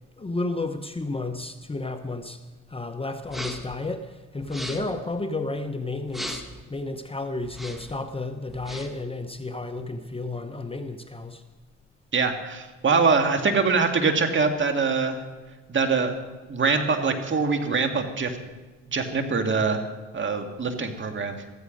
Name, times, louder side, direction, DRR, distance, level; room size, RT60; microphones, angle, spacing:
voice 1, 0.2-2.4 2.7-6.4 6.7-11.4, left 2 dB, 20° left, 8 dB, 0.9 m, -32 dB
sound 1, 3.2-3.8 4.4-5.0 6.1-6.6 7.4-8.0 8.5-9.0, equal, ahead, 1.7 m, -37 dB
voice 2, 12.1-15.2 15.7-16.2 16.5-18.4 18.9-19.8 20.1-21.4, right 4 dB, 40° right, 5 dB, 2.0 m, -23 dB
15.0 x 14.5 x 5.3 m, 1.3 s
cardioid pair, 90°, 30 cm